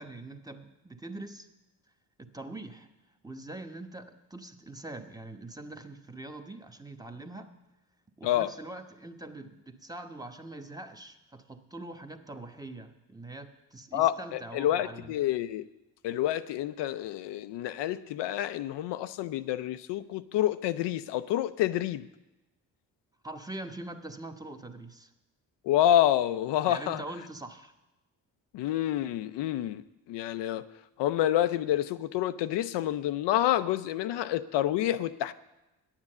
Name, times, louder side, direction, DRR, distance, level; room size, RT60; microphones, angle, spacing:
voice 1, 0.0-1.5 2.2-2.9 3.2-7.5 8.2-15.2 23.2-25.1 26.7-27.7, right 2 dB, 10° right, 6 dB, 1.0 m, -43 dB
voice 2, 13.9-15.7 16.0-22.1 25.6-27.0 28.5-30.7 31.0-35.3, left 12 dB, 75° left, 12 dB, 0.5 m, -28 dB
9.3 x 7.4 x 7.5 m, 1.0 s
supercardioid pair, 55°, 43 cm